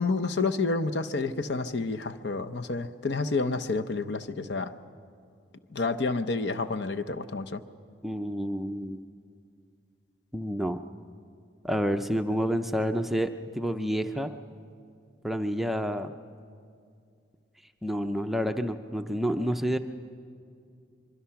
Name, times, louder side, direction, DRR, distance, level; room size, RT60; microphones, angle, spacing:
voice 1, 0.0-4.7 5.7-7.6, left 3 dB, 60° left, 8 dB, 0.7 m, -29 dB
voice 2, 8.0-9.0 10.3-10.8 11.6-14.3 15.2-16.1 17.8-19.8, equal, ahead, 6 dB, 0.5 m, -29 dB
24.0 x 23.5 x 5.8 m, 2.4 s
head